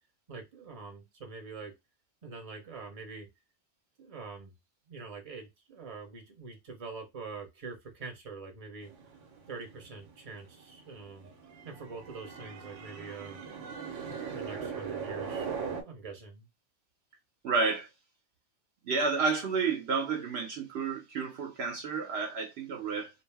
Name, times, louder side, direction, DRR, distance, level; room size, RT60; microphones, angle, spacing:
voice 1, 0.3-1.7 2.2-3.3 4.0-4.5 4.9-8.9 9.5-11.3 11.6-13.4 14.1-15.5 15.8-16.5, right 4 dB, 35° right, 0.8 m, -44 dB
sound 1, 8.8-15.8, right 6 dB, 85° right, 1.0 m, -40 dB
voice 2, 17.4-17.9 18.8-23.1, right 4 dB, 65° right, 0.8 m, -30 dB
2.5 x 2.0 x 3.2 m
omnidirectional pair, 1.2 m